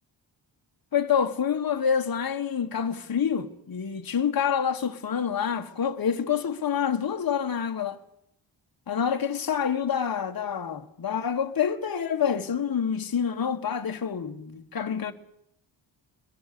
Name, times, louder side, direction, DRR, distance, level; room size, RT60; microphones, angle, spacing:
voice 1, 0.9-8.0 8.9-15.1, left 7 dB, 50° left, 1.5 m, -27 dB
22.5 x 22.0 x 6.9 m
wide cardioid pair, 115°, 46 cm